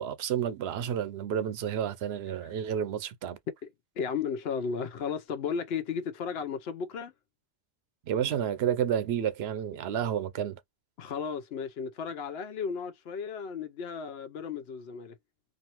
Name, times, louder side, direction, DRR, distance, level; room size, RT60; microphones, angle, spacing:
voice 1, 0.0-3.4 8.0-10.6, right 9 dB, 80° right, 0.8 m, -30 dB
voice 2, 4.0-7.1 11.0-15.2, left 6 dB, 75° left, 0.9 m, -34 dB
2.6 x 2.6 x 2.8 m
omnidirectional pair, 1.0 m